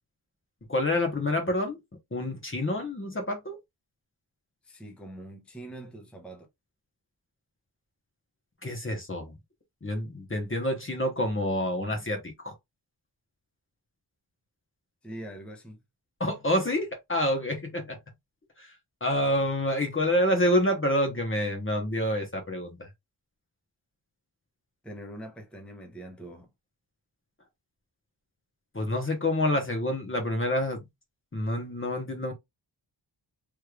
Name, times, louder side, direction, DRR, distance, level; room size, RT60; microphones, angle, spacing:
voice 1, 0.7-1.8 2.1-3.6 8.6-9.3 9.8-12.5 16.2-18.0 18.6-18.7 19.0-22.9 28.7-30.9 31.3-32.3, left 1 dB, 25° left, 1.0 m, -28 dB
voice 2, 4.6-6.5 15.0-15.8 24.8-26.5, right 1 dB, ahead, 0.8 m, -43 dB
3.3 x 3.2 x 2.3 m
wide cardioid pair, 90°, 46 cm